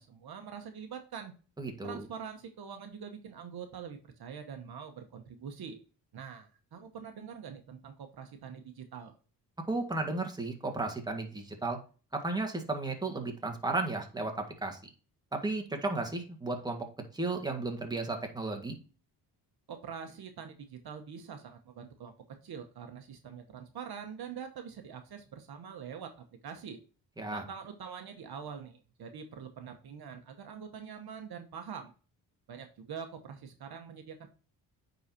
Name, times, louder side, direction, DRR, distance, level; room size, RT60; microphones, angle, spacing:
voice 1, 0.0-1.4 1.8-5.8 6.1-9.1 19.7-26.8 27.3-31.9 32.5-34.3, right 7 dB, 60° right, 6 dB, 1.1 m, -44 dB
voice 2, 1.6-2.0 9.7-11.8 12.1-14.8 15.3-16.9 17.1-18.8 27.2-27.4, right 2 dB, 10° right, 2 dB, 1.6 m, -34 dB
9.3 x 4.0 x 2.8 m, 0.36 s
cardioid pair, 75°, 42 cm